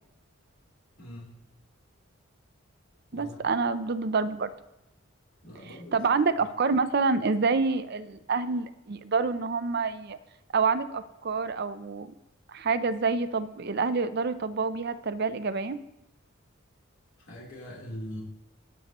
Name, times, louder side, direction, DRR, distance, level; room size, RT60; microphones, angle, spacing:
voice 1, 1.0-1.4 3.1-3.5 5.4-6.0 17.3-18.2, equal, 70° left, -5 dB, 3.6 m, -42 dB
voice 2, 3.1-4.5 5.7-10.2 10.5-12.1 12.5-15.8, right 4 dB, 50° right, 11 dB, 0.5 m, -27 dB
18.0 x 6.6 x 3.0 m, 0.86 s
head